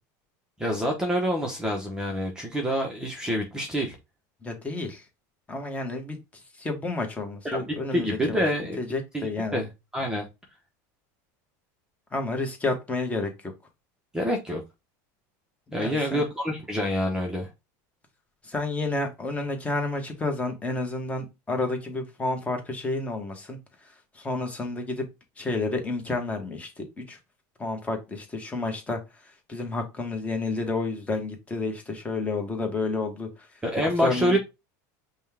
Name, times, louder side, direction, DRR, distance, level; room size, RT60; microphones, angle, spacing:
voice 1, 0.6-4.0 7.4-8.8 9.1-10.3 14.1-14.6 15.7-17.5 33.6-34.4, equal, 5° right, 0.8 m, -27 dB
voice 2, 4.4-5.0 5.5-6.2 6.6-8.4 8.8-9.6 12.1-13.3 15.8-16.2 18.4-23.6 24.1-25.0 25.4-27.2 27.6-29.0 29.5-33.5 34.0-34.4, left 3 dB, 15° left, 1.1 m, -30 dB
5.3 x 2.3 x 3.4 m
supercardioid pair, 130°, 10 cm